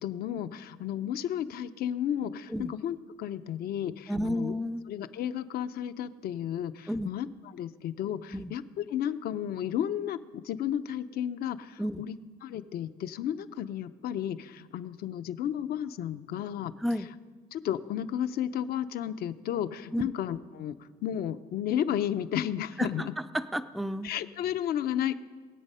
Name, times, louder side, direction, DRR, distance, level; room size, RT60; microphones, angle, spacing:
voice 1, 0.0-4.5 4.9-7.3 7.5-12.2 12.4-16.7 17.5-20.7 21.0-23.1 24.0-25.1, left 10 dB, 65° left, 11 dB, 0.7 m, -33 dB
voice 2, 4.1-4.8 6.9-7.1 8.3-8.5 11.8-12.0 16.8-17.1 19.9-20.1 22.8-23.1 23.3-24.1, equal, ahead, 11 dB, 0.4 m, -31 dB
21.0 x 8.2 x 5.6 m, 1.5 s
cardioid pair, 110°, 17 cm